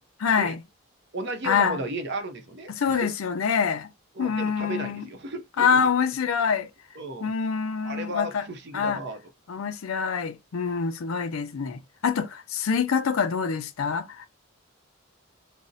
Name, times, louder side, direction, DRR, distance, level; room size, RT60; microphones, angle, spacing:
voice 1, 0.2-0.6 1.4-1.8 2.7-3.9 4.2-5.1 5.6-6.7 7.2-8.5 8.7-9.0 9.5-14.3, left 6 dB, 70° left, 0.5 m, -25 dB
voice 2, 1.1-3.1 4.1-5.9 7.0-7.3 7.8-9.2, right 1 dB, 50° right, 0.6 m, -34 dB
2.5 x 2.0 x 3.8 m
head